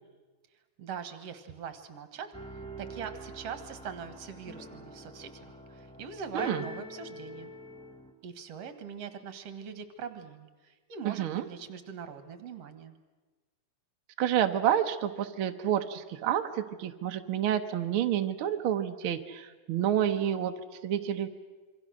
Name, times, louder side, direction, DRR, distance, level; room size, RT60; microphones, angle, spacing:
voice 1, 0.8-2.3 2.8-7.5 8.2-12.9, right 7 dB, 55° right, 9 dB, 2.3 m, -42 dB
sound 1, 2.3-8.1, equal, 5° left, 1.1 m, -45 dB
voice 2, 11.0-11.5 14.2-20.5 20.8-21.3, right 10 dB, 75° right, 6 dB, 1.2 m, -29 dB
27.0 x 24.0 x 6.3 m, 1.3 s
omnidirectional pair, 3.7 m